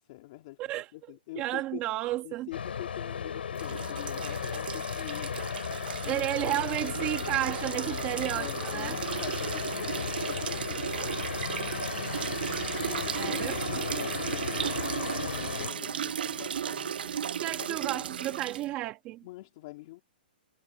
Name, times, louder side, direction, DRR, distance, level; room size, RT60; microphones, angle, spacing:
voice 1, 0.0-1.8 2.2-5.4 5.8-6.9 8.3-10.9 12.8-17.1 17.5-18.1 19.2-20.0, left 20 dB, 35° left, 3.8 m, -45 dB
voice 2, 1.4-2.5 6.1-9.0 13.2-13.6 17.4-19.2, right 16 dB, 20° right, 1.7 m, -32 dB
sound 1, 2.5-15.7, left 7 dB, 80° left, 5.3 m, -35 dB
sound 2, 3.6-18.7, right 9 dB, 70° right, 0.6 m, -35 dB
hypercardioid pair, 165°, 5 cm